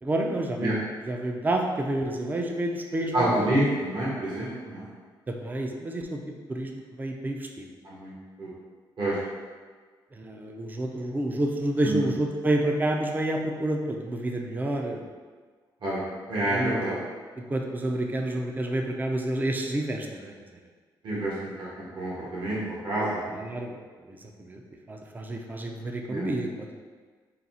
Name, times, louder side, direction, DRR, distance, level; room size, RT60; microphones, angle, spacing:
voice 1, 0.0-3.5 5.3-6.2 6.5-7.6 10.1-15.1 16.5-16.8 17.4-20.3 23.3-23.8 24.1-24.6 24.9-26.8, right 1 dB, 20° right, 2 dB, 0.5 m, -29 dB
voice 2, 3.1-4.8 7.8-8.5 9.0-9.2 11.8-12.1 15.8-16.0 16.3-17.0 21.0-21.7 21.9-23.4 26.1-26.2, right 1 dB, 60° right, -8 dB, 1.5 m, -28 dB
4.0 x 2.4 x 4.1 m, 1.5 s
cardioid pair, 90°, 9 cm